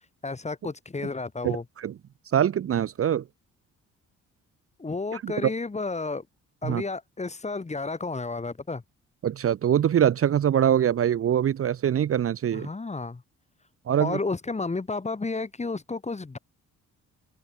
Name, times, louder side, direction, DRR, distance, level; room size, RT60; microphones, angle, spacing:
voice 1, 0.2-1.6 4.8-6.2 6.6-8.8 12.5-13.2 14.0-16.4, left 3 dB, 20° left, 3.5 m, -31 dB
voice 2, 1.4-1.9 2.3-3.2 5.1-5.5 6.6-6.8 9.2-12.7 13.9-14.2, right 9 dB, 50° right, 0.8 m, -23 dB
open air
cardioid pair, 90°, 30 cm